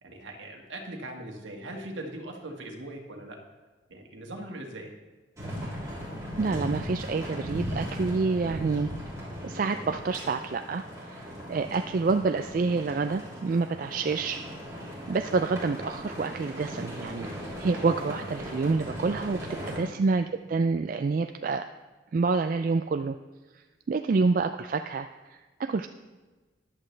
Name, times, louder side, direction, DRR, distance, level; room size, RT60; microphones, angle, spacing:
voice 1, 0.0-3.4 3.9-4.9 19.7-19.9, right 1 dB, 70° right, 1 dB, 1.8 m, -40 dB
sound 1, 5.4-19.8, equal, 15° right, 3.4 m, -38 dB
voice 2, 6.4-8.9 9.4-10.8 11.1-14.4 15.1-17.3 17.6-19.4 19.7-21.6 22.1-23.2 23.5-25.9, right 4 dB, 45° right, 7 dB, 0.3 m, -28 dB
14.0 x 10.5 x 3.3 m, 1.3 s
head